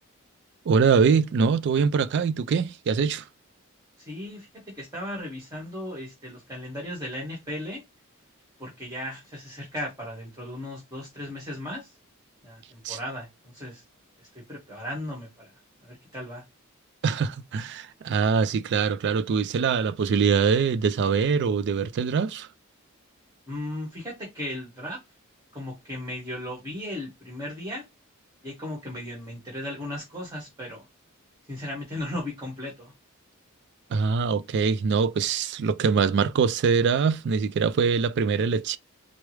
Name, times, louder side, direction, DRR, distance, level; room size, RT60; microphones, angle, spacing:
voice 1, 0.7-3.2 12.8-13.0 17.0-22.5 33.9-38.8, right 5 dB, 55° right, 0.3 m, -23 dB
voice 2, 4.0-7.8 8.6-12.0 12.4-13.8 14.2-16.4 23.5-25.0 25.5-27.8 28.4-30.9 31.5-32.9, left 1 dB, 15° right, 1.4 m, -36 dB
4.6 x 2.0 x 3.1 m
head